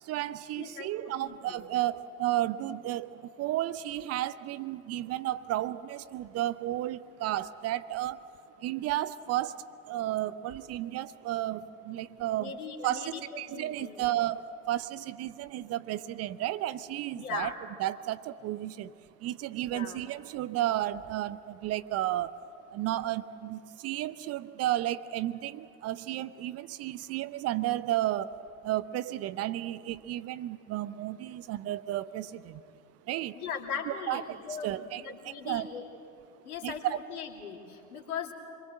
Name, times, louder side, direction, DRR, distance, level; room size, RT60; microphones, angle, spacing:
voice 1, 0.0-8.2 8.6-12.6 12.8-17.5 17.8-18.9 19.2-22.4 22.7-28.4 28.6-32.6 33.1-33.4 33.9-34.4 34.6-35.7 36.6-37.0, right 14 dB, 35° right, 16 dB, 0.6 m, -33 dB
voice 2, 0.6-1.6 12.4-14.0 17.2-17.5 19.7-20.0 33.3-35.8 36.4-38.3, left 6 dB, 70° left, 4 dB, 2.9 m, -39 dB
26.0 x 22.5 x 7.7 m, 2.7 s
hypercardioid pair, 85°, 45 cm